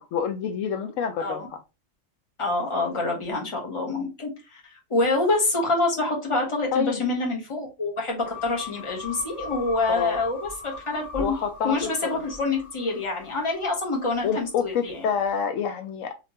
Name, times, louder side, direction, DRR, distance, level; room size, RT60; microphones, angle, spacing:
voice 1, 0.0-1.4 6.7-7.0 9.9-10.2 11.2-11.8 12.0-12.2 14.2-16.2, left 6 dB, 80° left, 7 dB, 0.9 m, -27 dB
voice 2, 2.4-4.6 4.9-11.4 11.6-15.0, left 2 dB, 25° left, -1 dB, 1.0 m, -26 dB
sound 1, 8.2-14.6, left 4 dB, ahead, 1.2 m, -39 dB
3.2 x 2.8 x 2.9 m, 0.26 s
omnidirectional pair, 1.3 m